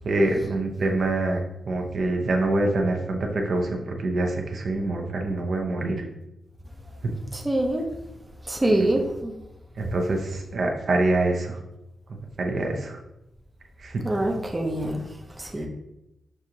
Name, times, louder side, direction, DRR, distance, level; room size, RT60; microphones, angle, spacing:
voice 1, 0.0-1.4 1.7-6.0 7.0-7.1 8.8-8.9 9.8-11.6 12.4-13.0 13.8-14.0, right 2 dB, 60° right, 2 dB, 0.7 m, -25 dB
voice 2, 7.3-7.8 8.5-9.3 14.0-15.0 15.4-15.7, right 1 dB, 20° right, 0 dB, 0.6 m, -24 dB
6.1 x 2.5 x 2.8 m, 0.90 s
cardioid pair, 70°, 0 cm